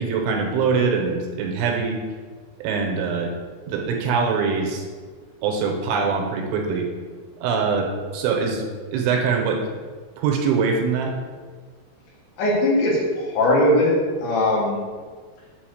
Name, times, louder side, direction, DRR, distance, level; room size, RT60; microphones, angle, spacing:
voice 1, 0.0-2.0 2.6-3.3 3.7-4.9 5.4-6.9 7.4-8.6 8.9-9.6 10.2-11.1, right 5 dB, 80° right, 2 dB, 3.1 m, -23 dB
voice 2, 12.4-14.8, left 1 dB, 70° left, -3 dB, 3.5 m, -20 dB
7.6 x 4.1 x 6.4 m, 1.5 s
omnidirectional pair, 5.7 m